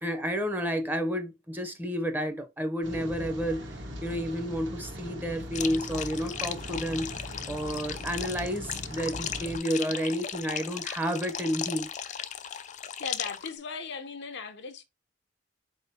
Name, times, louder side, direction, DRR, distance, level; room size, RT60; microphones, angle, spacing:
voice 1, 0.0-3.8 4.0-7.1 7.5-12.2, equal, 10° right, 0.7 m, -31 dB
Rain, 2.8-9.6, equal, 65° right, 1.3 m, -40 dB
sound 1, 5.5-13.5, left 9 dB, 40° left, 0.3 m, -37 dB
voice 2, 13.0-14.8, left 5 dB, 65° left, 0.7 m, -38 dB
4.2 x 3.5 x 2.8 m
head